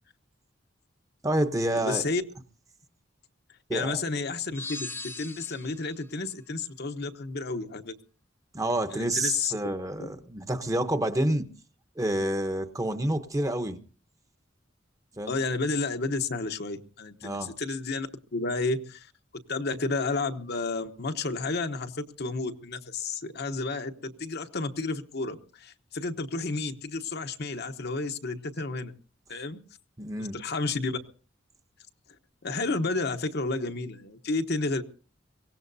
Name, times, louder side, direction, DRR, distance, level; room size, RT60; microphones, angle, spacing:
voice 1, 1.2-2.0 3.7-4.0 8.5-11.5 12.0-13.8 15.2-15.4 17.2-17.5 30.0-30.4, right 1 dB, 20° right, 8 dB, 0.9 m, -28 dB
voice 2, 1.8-2.2 3.7-8.0 8.9-9.6 10.0-10.1 15.2-19.1 19.5-28.9 29.3-29.6 30.2-31.0 32.4-34.8, left 3 dB, 60° left, 7 dB, 1.0 m, -31 dB
sound 1, 4.5-5.9, left 2 dB, 15° left, 0.9 m, -39 dB
23.5 x 17.5 x 2.7 m, 0.40 s
head